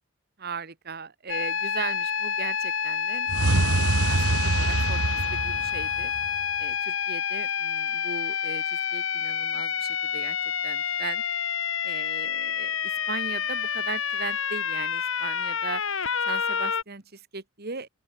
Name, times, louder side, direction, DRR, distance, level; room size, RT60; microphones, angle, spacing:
voice 1, 0.4-3.3 4.0-6.1 6.6-10.4 10.6-11.2 11.8-15.8 16.3-17.9, right 5 dB, 45° right, 1.8 m, -38 dB
sound 1, 1.3-16.8, left 7 dB, 60° left, 3.2 m, -28 dB
sound 2, 3.3-6.4, right 2 dB, 90° right, 1.3 m, -25 dB
open air
head